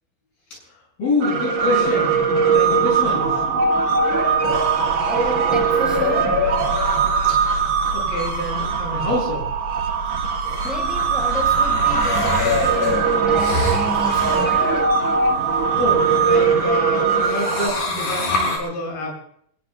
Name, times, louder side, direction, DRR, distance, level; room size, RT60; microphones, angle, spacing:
voice 1, 1.0-2.2 2.5-3.4 7.2-7.4 7.9-9.5 15.8-19.1, left 2 dB, 85° left, -1 dB, 9.2 m, -26 dB
sound 1, 1.2-17.7, right 4 dB, 50° right, 3.6 m, -20 dB
voice 2, 5.0-6.5 10.3-14.9, equal, ahead, 0 dB, 4.8 m, -31 dB
sound 2, 10.4-16.8 17.1-18.6, left 2 dB, 60° left, 6.1 m, -29 dB
26.5 x 21.0 x 2.4 m, 0.64 s
omnidirectional pair, 4.2 m